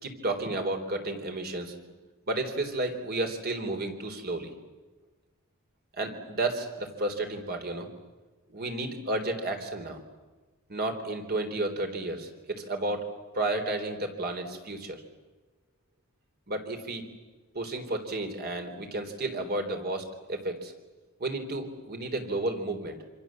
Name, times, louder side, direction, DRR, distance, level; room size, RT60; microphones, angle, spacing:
voice 1, 0.0-1.8 2.3-4.5 6.0-7.9 8.5-10.0 10.7-13.1 13.3-15.0 16.5-17.0 17.5-20.7 21.2-23.0, right 2 dB, 45° right, 5 dB, 3.6 m, -32 dB
27.0 x 26.5 x 7.6 m, 1.3 s
head